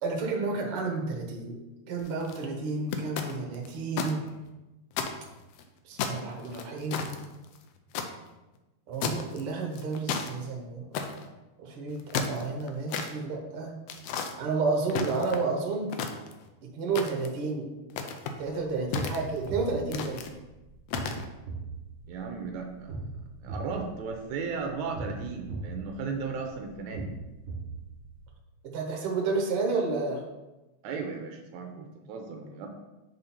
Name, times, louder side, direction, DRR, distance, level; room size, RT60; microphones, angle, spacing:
voice 1, 0.0-1.6 1.9-4.3 5.9-7.1 8.9-10.9 11.6-13.7 14.4-16.0 16.7-17.7 18.4-20.2 28.7-30.2, right 4 dB, 60° right, 1 dB, 1.7 m, -31 dB
sound 1, 2.0-2.4 2.9-4.1 4.5-4.6 4.9-5.6 6.0-8.1 9.0-9.4 9.7-10.3 10.9-11.3 11.9-13.1 13.9-14.3 14.9-15.5 15.9-16.5 17.0-17.4 17.9-18.4 18.9-19.5 19.9-20.3 20.9-21.3, left 6 dB, 80° left, 1.5 m, -33 dB
sound 2, 18.6-28.4, right 2 dB, 30° right, 2.3 m, -40 dB
voice 2, 22.1-22.9 23.4-27.1 30.8-32.7, right 5 dB, 85° right, 3 dB, 2.0 m, -35 dB
7.2 x 3.9 x 4.2 m, 1.0 s
omnidirectional pair, 3.4 m